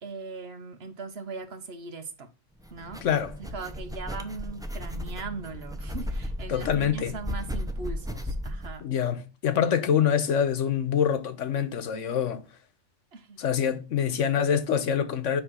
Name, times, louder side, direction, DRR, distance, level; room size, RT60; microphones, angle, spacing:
voice 1, 0.0-2.3 2.7-3.2 3.5-8.9 13.1-13.4, right 4 dB, 60° right, 1.3 m, -39 dB
sound 1, 2.6-8.7, equal, 5° right, 0.6 m, -35 dB
voice 2, 3.0-3.3 6.5-7.1 8.8-12.4 13.4-15.4, left 8 dB, 90° left, 1.3 m, -25 dB
9.7 x 3.3 x 6.2 m
omnidirectional pair, 1.2 m